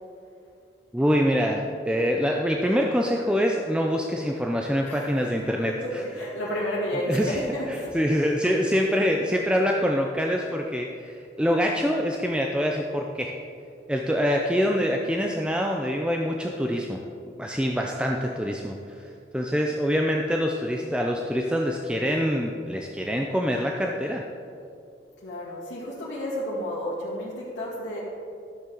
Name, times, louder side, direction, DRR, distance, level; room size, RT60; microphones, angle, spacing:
voice 1, 0.9-6.0 7.1-7.4 7.7-13.3 13.9-17.0 17.4-24.2, equal, 5° right, 1 dB, 0.4 m, -25 dB
voice 2, 5.7-7.9 25.2-28.0, equal, 85° left, -8 dB, 2.3 m, -31 dB
13.5 x 7.0 x 3.9 m, 2.5 s
head